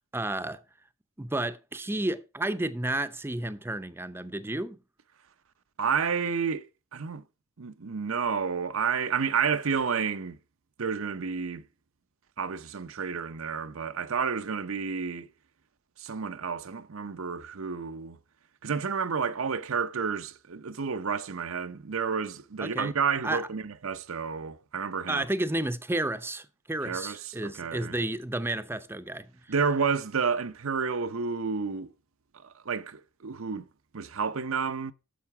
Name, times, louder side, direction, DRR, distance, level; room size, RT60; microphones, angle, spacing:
voice 1, 0.1-0.6 1.2-4.8 22.6-22.9 23.2-23.4 25.1-29.3, right 1 dB, 10° right, 0.6 m, -31 dB
voice 2, 5.8-7.2 7.6-10.4 10.8-11.6 12.4-15.3 16.0-18.2 18.6-25.3 26.8-28.0 29.5-31.9 32.4-33.6 33.9-34.9, right 6 dB, 80° right, 0.7 m, -30 dB
10.5 x 6.8 x 4.7 m
head